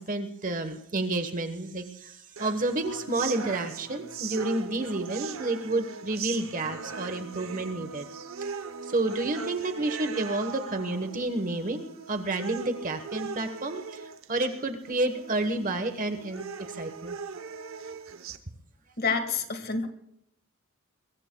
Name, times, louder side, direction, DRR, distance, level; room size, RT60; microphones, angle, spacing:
voice 1, 0.0-8.1 8.4-8.5 8.8-17.2, right 2 dB, 35° right, 7 dB, 1.2 m, -30 dB
sound 1, 2.4-18.4, right 5 dB, 65° right, 0.9 m, -39 dB
voice 2, 19.0-19.9, left 5 dB, 45° left, 7 dB, 1.7 m, -28 dB
23.0 x 22.0 x 2.3 m, 0.72 s
head